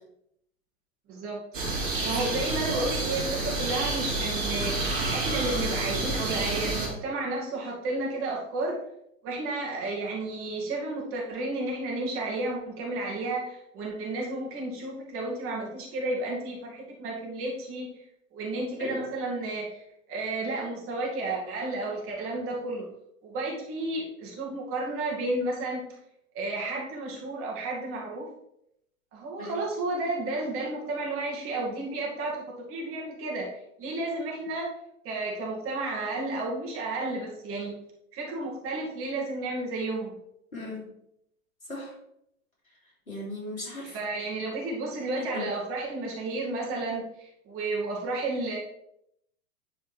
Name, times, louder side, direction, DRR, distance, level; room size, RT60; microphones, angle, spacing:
voice 1, 1.1-1.4 2.0-8.8 9.2-17.9 18.3-22.9 23.2-25.9 26.3-28.3 29.1-33.5 33.8-34.7 35.0-37.8 38.1-40.2 43.8-48.6, right 2 dB, 30° right, -3 dB, 2.2 m, -32 dB
sound 1, 1.5-6.9, right 2 dB, 65° right, 3.0 m, -29 dB
voice 2, 40.5-40.8 41.7-41.9 43.1-44.0 45.3-45.5, left 1 dB, 80° left, -4 dB, 3.1 m, -36 dB
10.5 x 4.4 x 3.3 m, 0.78 s
figure-of-eight pair, 95°, 41 cm